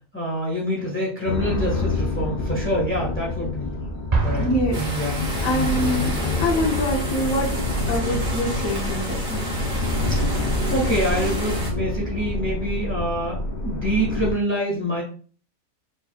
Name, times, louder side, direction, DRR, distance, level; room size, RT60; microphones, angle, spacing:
voice 1, 0.1-3.7 4.2-4.5 4.8-5.1 10.2-15.0, equal, 10° left, -4 dB, 1.5 m, -26 dB
sound 1, 1.3-14.3, left 2 dB, 45° left, 1.0 m, -27 dB
Explosion, 4.1-5.9, right 3 dB, 40° right, 0.7 m, -26 dB
voice 2, 4.4-4.8 5.4-6.1 6.4-7.5 7.9-9.5, left 1 dB, 85° left, -1 dB, 1.3 m, -25 dB
sound 2, 4.7-11.7, right 1 dB, 90° right, 2.0 m, -31 dB
4.7 x 4.1 x 2.4 m, 0.41 s
omnidirectional pair, 1.4 m